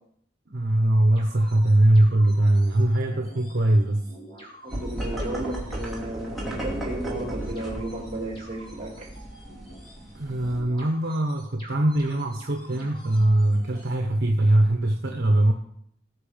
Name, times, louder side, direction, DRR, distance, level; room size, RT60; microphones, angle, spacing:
voice 1, 0.5-4.0 10.1-15.5, right 1 dB, 60° right, 3 dB, 1.1 m, -21 dB
sound 1, 1.2-13.9, right 1 dB, 30° left, 4.9 m, -47 dB
voice 2, 4.6-9.1, right 1 dB, 35° right, 1 dB, 2.9 m, -34 dB
sound 2, 4.7-10.6, right 1 dB, ahead, 2.9 m, -34 dB
18.5 x 6.3 x 5.2 m, 0.70 s
head